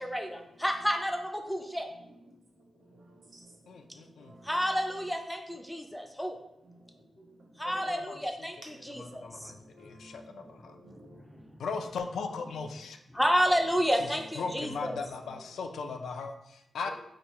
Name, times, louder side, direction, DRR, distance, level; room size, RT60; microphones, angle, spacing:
voice 1, 0.0-1.9 4.4-6.4 7.6-9.5 11.2-11.4 13.1-15.0, equal, 5° left, 3 dB, 0.3 m, -30 dB
voice 2, 2.9-3.5 4.2-4.5 7.6-7.8 8.8-9.0 9.6-11.2, right 1 dB, 65° right, -2 dB, 1.0 m, -53 dB
voice 3, 3.7-4.3 7.7-8.2 8.9-10.2 10.5-10.8 11.6-13.0 14.4-16.9, left 4 dB, 90° left, 5 dB, 0.3 m, -38 dB
2.8 x 2.2 x 4.1 m, 0.84 s
wide cardioid pair, 135°, 0 cm